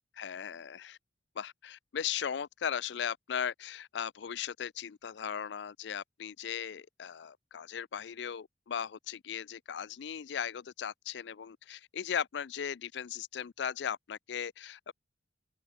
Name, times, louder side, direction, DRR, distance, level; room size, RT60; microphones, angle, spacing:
voice 1, 0.2-1.0 1.4-14.9, left 8 dB, 65° left, 0.4 m, -37 dB
open air
head